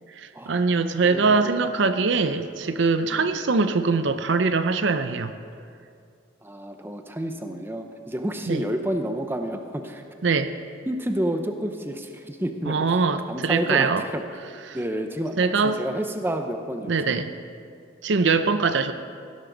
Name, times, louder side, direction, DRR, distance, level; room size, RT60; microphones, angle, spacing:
voice 1, 0.1-5.3 8.5-8.6 10.2-10.5 12.7-14.0 14.7-14.8 15.4-15.8 16.9-17.3 18.0-18.9, right 4 dB, 60° right, 10 dB, 0.5 m, -22 dB
voice 2, 1.1-1.6 3.1-3.4 6.4-10.1 10.9-12.8 13.3-14.2 14.7-15.4 15.6-17.1, right 1 dB, 10° right, 6 dB, 0.7 m, -30 dB
16.0 x 13.0 x 3.9 m, 2.3 s
head